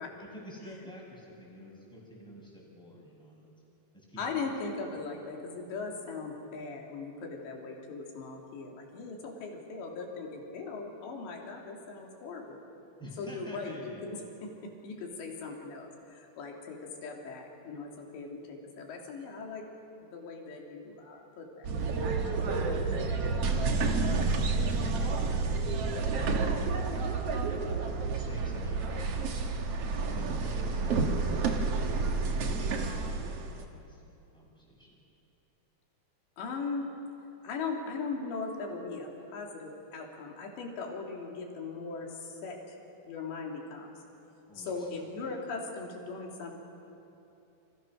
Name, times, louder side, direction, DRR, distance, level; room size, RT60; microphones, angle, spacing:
voice 1, 0.2-3.5 3.9-4.5 4.9-5.0 13.0-14.1 22.9-24.4 24.7-27.3 27.7-29.6 29.9-32.2 32.4-34.9 44.5-45.2, equal, ahead, -4 dB, 6.9 m, -49 dB
voice 2, 4.2-12.6 13.2-14.5 14.8-16.8 17.0-19.6 20.1-21.7 36.4-36.9 37.4-42.8 43.0-43.9 44.5-46.5, left 4 dB, 80° left, 0 dB, 5.2 m, -39 dB
sound 1, 21.6-33.6, right 4 dB, 60° right, 1.7 m, -30 dB
29.0 x 27.0 x 6.4 m, 2.9 s
omnidirectional pair, 5.0 m